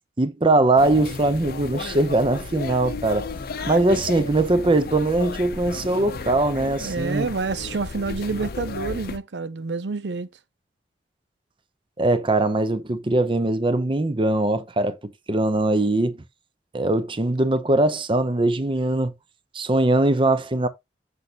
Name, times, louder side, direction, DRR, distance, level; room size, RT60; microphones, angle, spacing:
voice 1, 0.2-3.3 3.7-7.3 12.0-15.0 15.3-16.2 16.7-19.1 19.5-20.7, right 2 dB, 30° right, 0.7 m, -21 dB
sound 1, 0.8-9.2, left 4 dB, 60° left, 0.6 m, -34 dB
voice 2, 6.8-10.3, right 4 dB, 75° right, 0.6 m, -28 dB
6.8 x 6.4 x 2.9 m
head